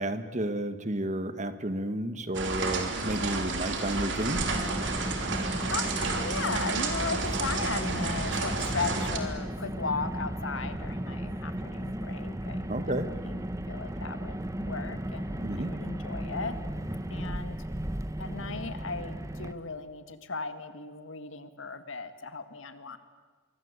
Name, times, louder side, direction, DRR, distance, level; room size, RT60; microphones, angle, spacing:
voice 1, 0.0-4.4 12.7-13.1 15.4-15.7, right 1 dB, 35° right, 10 dB, 1.5 m, -31 dB
sound 1, 2.3-9.2, right 3 dB, 65° right, 3.3 m, -31 dB
Car, 4.3-19.5, right 1 dB, 15° right, 0.9 m, -35 dB
voice 2, 5.1-12.7 13.0-16.6 17.1-17.6 18.2-23.0, left 4 dB, 80° left, 10 dB, 2.0 m, -37 dB
27.5 x 23.5 x 8.2 m, 1.4 s
head